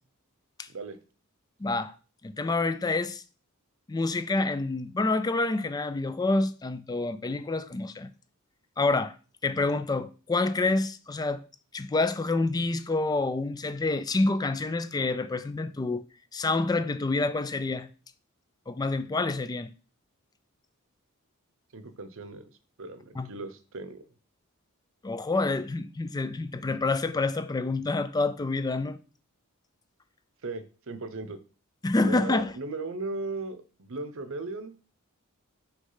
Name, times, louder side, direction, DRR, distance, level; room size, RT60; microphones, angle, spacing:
voice 1, 1.6-1.9 2.2-3.2 3.9-8.1 8.8-9.1 9.4-11.4 11.7-16.0 16.3-17.9 18.7-19.7 23.2-23.3 25.0-29.0 31.8-32.5, left 3 dB, 20° left, 0.4 m, -27 dB
voice 2, 21.7-22.5 22.8-24.0 30.4-31.4 32.1-34.8, right 3 dB, 65° right, 0.8 m, -37 dB
6.4 x 3.1 x 5.6 m
head